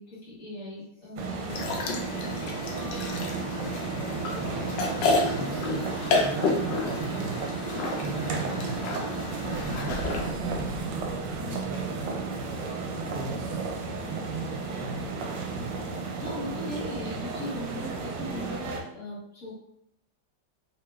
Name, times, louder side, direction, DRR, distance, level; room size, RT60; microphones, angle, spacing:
voice 1, 0.0-1.9 16.2-19.5, left 1 dB, 45° left, -7 dB, 1.4 m, -39 dB
sound 1, 1.2-18.8, right 3 dB, 85° right, 1.3 m, -33 dB
sound 2, 1.5-10.3, left 2 dB, 85° left, 1.3 m, -30 dB
voice 2, 3.1-4.7 5.0-9.0 9.5-10.8 11.4-12.5 13.0-15.7, right 4 dB, 70° right, -1 dB, 0.9 m, -39 dB
4.2 x 2.2 x 3.3 m, 0.75 s
omnidirectional pair, 1.9 m